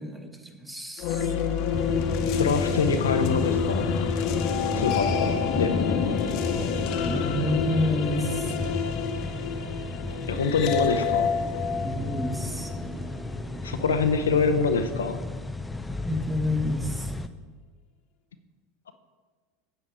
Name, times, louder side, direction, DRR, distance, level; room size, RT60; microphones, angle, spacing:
voice 1, 0.0-1.3 7.0-8.6 11.8-12.7 16.0-17.1, left 1 dB, 10° right, 5 dB, 1.4 m, -29 dB
sound 1, 1.0-13.1, left 7 dB, 60° left, 1.0 m, -28 dB
sound 2, 1.7-17.3, left 2 dB, 10° left, 0.6 m, -33 dB
voice 2, 2.4-3.9 4.7-5.7 10.3-11.3 13.6-15.2, left 5 dB, 85° left, 7 dB, 0.6 m, -25 dB
sound 3, 9.7-14.6, right 3 dB, 45° right, 1.7 m, -43 dB
9.0 x 8.0 x 4.8 m, 1.4 s
hypercardioid pair, 80°, 0 cm